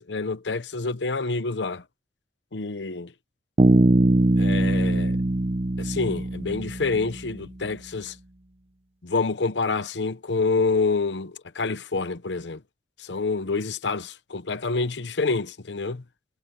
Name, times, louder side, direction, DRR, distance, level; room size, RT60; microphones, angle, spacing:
voice 1, 0.0-1.8 2.5-3.1 4.4-5.2 5.8-8.1 9.0-12.6 13.0-16.0, left 4 dB, 90° left, 0.9 m, -27 dB
Bass guitar, 3.6-7.3, right 1 dB, 35° right, 0.7 m, -21 dB
head